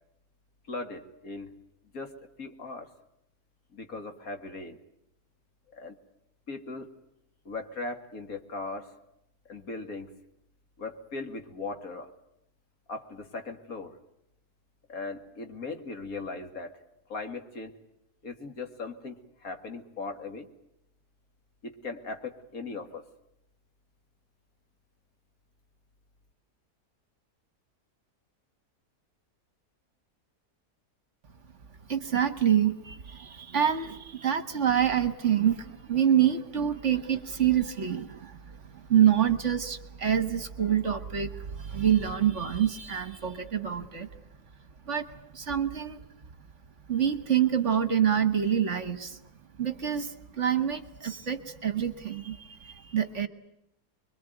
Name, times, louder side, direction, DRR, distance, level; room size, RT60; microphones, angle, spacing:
voice 1, 0.7-1.5 1.9-2.9 3.7-4.8 5.7-6.0 6.5-6.9 7.5-8.9 9.5-10.1 10.8-12.1 12.9-14.0 14.9-16.8 17.1-17.7 18.2-20.5 21.6-23.1, left 3 dB, 60° left, 6 dB, 2.6 m, -38 dB
voice 2, 31.9-44.1 44.9-45.1 45.3-46.0 46.9-49.2 49.6-53.3, right 9 dB, 50° right, 11 dB, 1.5 m, -26 dB
26.0 x 23.0 x 9.2 m, 0.81 s
omnidirectional pair, 1.7 m